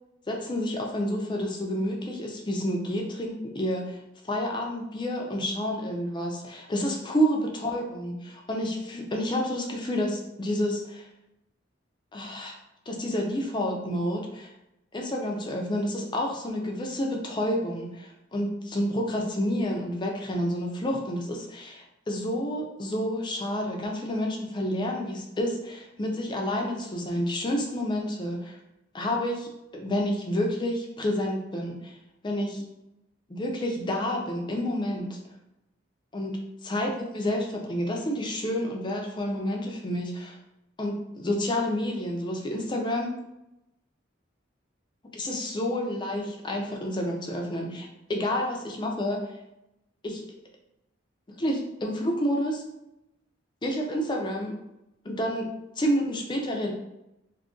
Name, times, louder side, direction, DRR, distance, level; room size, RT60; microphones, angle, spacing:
voice 1, 0.3-4.0 4.2-11.1 12.1-12.6 12.9-14.5 14.9-28.6 28.9-32.0 32.2-32.6 33.3-35.2 36.1-40.4 40.8-43.2 45.1-49.3 50.0-50.2 51.4-52.6 53.6-54.5 55.0-55.5 55.8-56.7, equal, 25° left, 1 dB, 0.5 m, -29 dB
2.7 x 2.5 x 3.7 m, 0.89 s
head